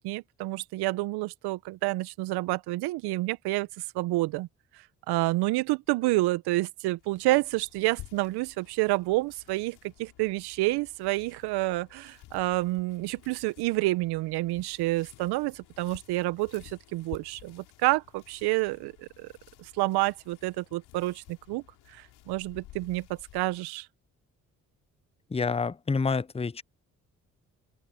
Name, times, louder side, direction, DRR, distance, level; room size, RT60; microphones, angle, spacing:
voice 1, 0.0-3.7 3.9-4.5 5.1-19.3 19.6-21.6 21.9-23.9, right 19 dB, 75° right, 1.6 m, -29 dB
sound 1, 7.0-23.6, left 16 dB, 75° left, 4.3 m, -53 dB
voice 2, 25.3-26.6, left 4 dB, 15° left, 0.8 m, -28 dB
open air
hypercardioid pair, 45°, 40 cm